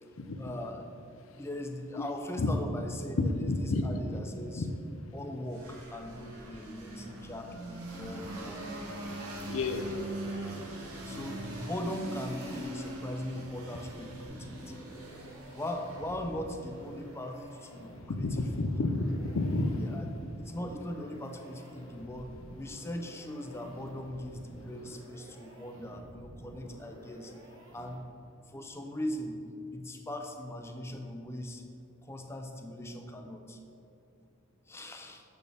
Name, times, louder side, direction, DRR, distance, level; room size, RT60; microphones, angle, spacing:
voice 1, 0.4-0.9 1.4-4.7 5.1-8.7 10.8-14.8 15.2-18.7 19.7-20.1 20.4-27.3 27.7-28.1 28.5-29.4 29.7-31.6 32.0-33.6 34.7-35.2, left 1 dB, 10° left, 4 dB, 0.4 m, -40 dB
voice 2, 3.2-3.8 4.5-4.7 9.5-9.9 18.1-19.8, left 2 dB, 65° left, 7 dB, 0.5 m, -30 dB
sound 1, 5.5-17.2, right 1 dB, 85° right, 1.2 m, -42 dB
sound 2, 14.2-28.3, equal, 60° right, 1.4 m, -50 dB
6.9 x 6.2 x 3.4 m, 2.7 s
head